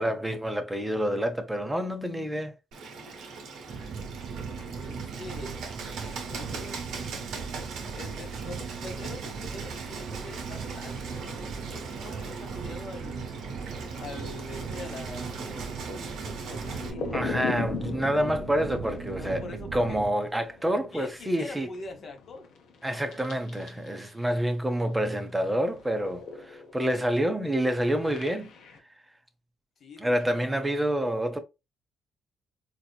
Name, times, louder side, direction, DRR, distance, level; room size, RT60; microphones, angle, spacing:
voice 1, 0.0-2.5 17.1-21.7 22.8-28.5 30.0-31.4, equal, 10° right, 0.7 m, -28 dB
Bird, 2.7-16.9, right 4 dB, 80° right, 1.2 m, -40 dB
sound 1, 3.7-20.1, right 6 dB, 65° right, 0.6 m, -38 dB
voice 2, 4.6-5.6 6.0-7.1 7.9-13.3 14.0-17.3 19.1-20.0 20.9-22.5 29.8-30.8, left 2 dB, 55° left, 1.0 m, -44 dB
sound 2, 12.0-24.2 24.5-28.8, left 5 dB, 80° left, 0.8 m, -41 dB
4.0 x 2.9 x 2.2 m
cardioid pair, 90°, 0 cm